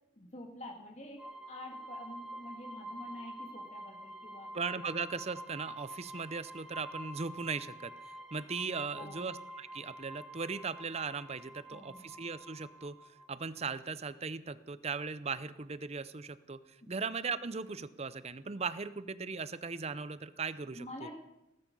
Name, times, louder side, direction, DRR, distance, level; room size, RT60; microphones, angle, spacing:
voice 1, 0.2-4.5 8.9-9.2 11.7-12.0 16.8-17.0 20.8-21.1, left 1 dB, 35° left, 1 dB, 2.1 m, -48 dB
sound 1, 1.2-13.6, right 1 dB, 5° right, 1.3 m, -48 dB
voice 2, 4.5-13.0 13.3-16.6 16.9-21.1, right 4 dB, 35° right, 15 dB, 0.7 m, -38 dB
18.5 x 13.0 x 5.4 m, 0.91 s
head